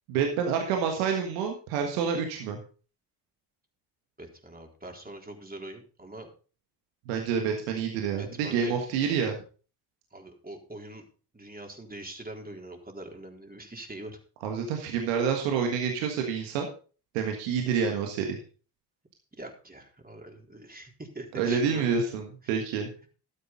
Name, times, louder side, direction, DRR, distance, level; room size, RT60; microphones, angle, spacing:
voice 1, 0.1-2.6 7.1-9.4 14.4-16.7 17.1-18.4 21.3-22.9, right 6 dB, 80° right, 3 dB, 1.7 m, -28 dB
voice 2, 4.2-6.3 8.2-8.7 10.1-11.0 11.3-14.2 19.4-21.9 22.4-22.5, right 1 dB, 20° right, 3 dB, 3.8 m, -43 dB
12.5 x 9.9 x 4.1 m, 0.37 s
hypercardioid pair, 45°, 49 cm